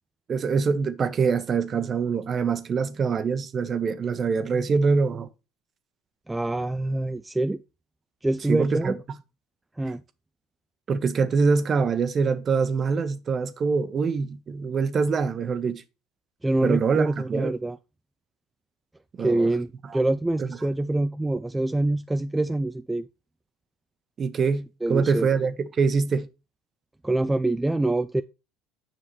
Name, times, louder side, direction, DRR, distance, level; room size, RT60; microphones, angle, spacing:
voice 1, 0.3-5.3 8.5-9.0 10.9-15.8 16.6-17.5 19.2-19.5 19.9-20.0 20.4-20.5 24.2-26.3, right 5 dB, 35° right, 0.8 m, -24 dB
voice 2, 6.3-7.6 8.2-9.0 9.8-10.0 16.4-17.8 19.2-23.1 24.8-25.3 27.0-28.2, right 2 dB, 10° right, 0.3 m, -25 dB
7.6 x 5.7 x 3.1 m
supercardioid pair, 95°, 0 cm